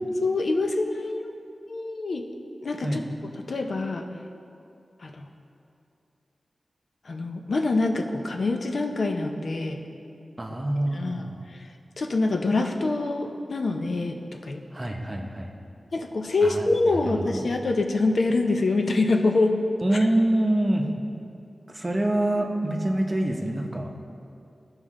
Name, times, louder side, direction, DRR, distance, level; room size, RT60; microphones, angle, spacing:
voice 1, 0.2-1.2 1.7-2.3 2.6-3.1 3.5-4.1 5.0-5.3 7.1-9.8 10.9-11.6 12.0-14.6 15.9-19.6 19.9-20.0, left 3 dB, 65° left, 4 dB, 0.6 m, -25 dB
voice 2, 10.4-11.4 14.7-15.5 16.4-17.5 19.8-20.9 21.7-23.9, right 1 dB, 30° right, 2 dB, 0.8 m, -26 dB
13.0 x 4.9 x 3.6 m, 2.5 s
wide cardioid pair, 80°, 0 cm